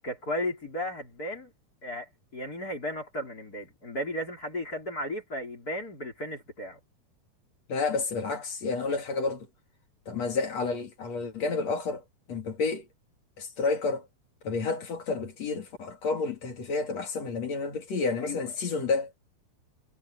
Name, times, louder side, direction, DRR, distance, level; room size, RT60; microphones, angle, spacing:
voice 1, 0.0-1.5 1.8-6.8 18.2-18.5, left 1 dB, 20° left, 3.7 m, -35 dB
voice 2, 7.7-9.5 10.1-12.8 13.4-14.1 14.4-19.1, left 4 dB, 45° left, 3.0 m, -30 dB
omnidirectional pair, 5.2 m